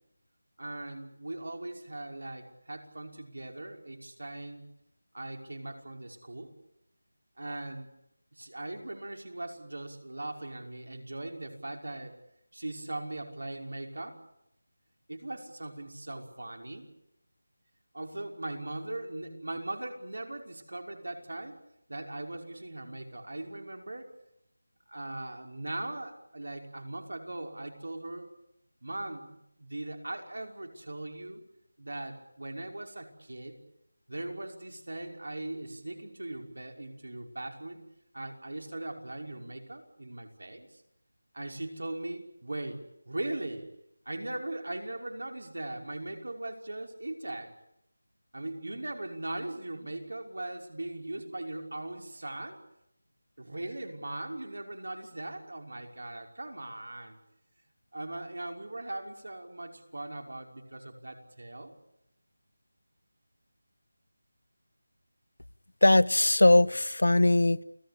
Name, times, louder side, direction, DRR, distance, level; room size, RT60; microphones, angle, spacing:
voice 1, 0.6-4.7 5.1-6.5 7.4-7.9 8.3-12.1 12.5-14.2 15.1-16.9 17.9-21.6 21.9-24.1 24.9-28.3 28.8-31.4 31.8-33.6 34.1-37.8 38.1-40.8 41.3-43.7 44.1-47.5 48.3-52.6 53.4-57.2 57.9-61.7, right 2 dB, 70° right, 4 dB, 5.7 m, -39 dB
voice 2, 65.8-67.6, left 2 dB, 90° left, 17 dB, 1.2 m, -21 dB
29.0 x 18.0 x 8.7 m, 0.82 s
figure-of-eight pair, 180°, 0 cm